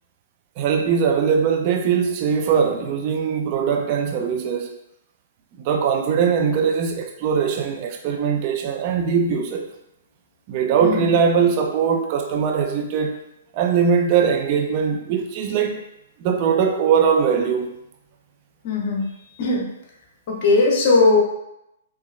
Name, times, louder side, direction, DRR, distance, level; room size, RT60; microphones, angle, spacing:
voice 1, 0.6-4.7 5.6-9.7 10.5-13.2 13.5-15.8 16.2-17.8, right 6 dB, 40° right, 0.4 m, -21 dB
voice 2, 18.6-19.0 19.4-19.6 20.3-21.2, left 3 dB, 50° left, 1.0 m, -18 dB
4.4 x 3.2 x 2.2 m
figure-of-eight pair, 115°, 0 cm